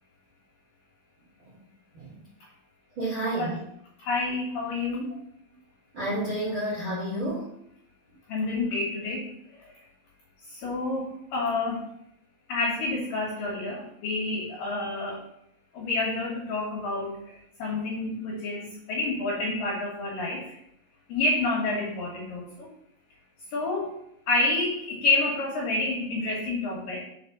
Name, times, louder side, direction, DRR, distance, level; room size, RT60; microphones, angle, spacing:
voice 1, 3.0-3.6 5.9-7.5, right 1 dB, 55° right, -7 dB, 1.5 m, -30 dB
voice 2, 4.0-5.1 8.3-9.3 9.6-9.8 10.5-11.9 12.5-15.2 15.7-20.6 21.1-22.7 23.5-23.9 24.3-27.0, left 2 dB, 60° left, -3 dB, 2.6 m, -29 dB
5.8 x 5.3 x 5.7 m, 0.74 s
omnidirectional pair, 5.2 m